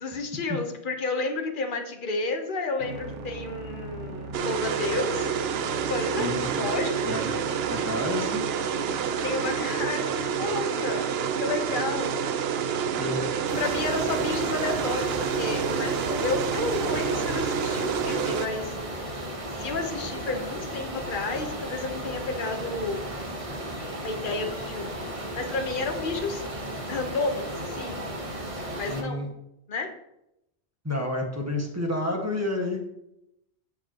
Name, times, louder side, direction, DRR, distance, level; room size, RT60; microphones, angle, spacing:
voice 1, 0.0-5.3 5.9-7.1 9.2-11.1 11.4-12.2 13.6-18.7 19.5-23.1 24.0-26.4 26.9-28.1 28.8-29.3 29.7-29.9, left 3 dB, 50° left, 4 dB, 1.3 m, -31 dB
sound 1, 2.8-17.9, right 4 dB, 90° right, 1.1 m, -39 dB
sound 2, 4.3-18.5, right 7 dB, 65° right, 0.8 m, -28 dB
voice 2, 6.2-6.6 7.1-7.3 7.7-8.4 13.0-13.3 28.9-29.3 30.8-32.8, left 1 dB, 15° right, 0 dB, 1.6 m, -29 dB
sound 3, 13.5-29.0, right 1 dB, 30° right, 1.2 m, -35 dB
15.5 x 5.8 x 3.0 m, 0.83 s
omnidirectional pair, 1.2 m